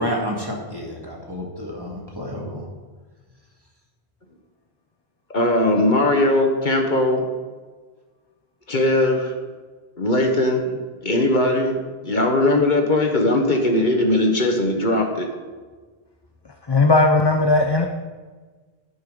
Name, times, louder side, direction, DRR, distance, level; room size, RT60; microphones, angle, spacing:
voice 1, 0.0-2.7, equal, 20° right, -2 dB, 2.0 m, -29 dB
voice 2, 5.3-7.3 8.7-9.3 10.0-10.7 11.0-15.3, left 1 dB, 50° left, 2 dB, 1.4 m, -19 dB
voice 3, 16.7-17.9, left 2 dB, 30° left, 4 dB, 0.5 m, -17 dB
11.0 x 11.0 x 3.9 m, 1.4 s
omnidirectional pair, 1.1 m